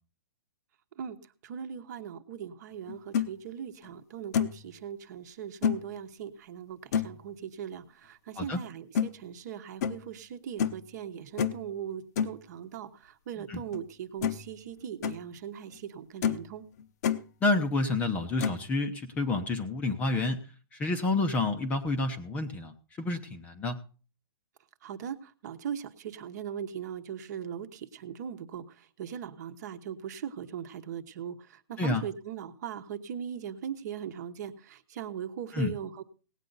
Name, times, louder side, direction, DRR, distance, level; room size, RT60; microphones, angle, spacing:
voice 1, 1.4-16.6 24.8-28.6 29.0-36.0, right 8 dB, 45° right, 9 dB, 1.1 m, -39 dB
sound 1, 2.9-3.3 3.8-3.9 4.3-4.6 5.6-5.8 6.9-7.2 8.9-9.1 9.8-10.0 10.6-10.8 11.4-11.6 12.2-12.4 13.7-13.8 14.2-14.5 14.8-15.2 15.7-15.8 16.2-16.5 16.8-17.2 18.4-18.6, left 8 dB, 40° left, 0.8 m, -28 dB
voice 2, 17.4-20.4 20.7-23.8 31.8-32.1 35.5-35.7, left 2 dB, 10° left, 7 dB, 0.7 m, -29 dB
18.0 x 9.0 x 4.0 m, 0.36 s
hypercardioid pair, 165°, 13 cm